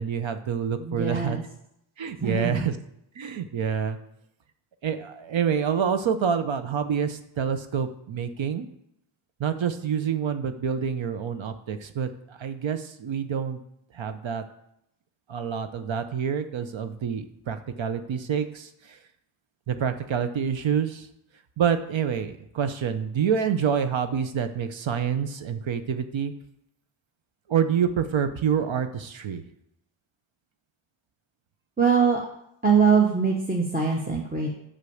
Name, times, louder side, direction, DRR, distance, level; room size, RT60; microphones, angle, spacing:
voice 1, 0.0-1.4 2.0-2.7 3.2-4.0 4.8-8.7 9.4-13.6 13.9-14.4 15.3-19.0 19.7-21.1 21.6-26.3 27.5-29.4, right 7 dB, 70° right, 9 dB, 0.9 m, -27 dB
voice 2, 0.8-1.4 2.2-2.7 31.8-32.2 32.6-34.6, right 6 dB, 20° right, -1 dB, 1.1 m, -22 dB
8.2 x 5.7 x 7.1 m, 0.78 s
wide cardioid pair, 105°, 49 cm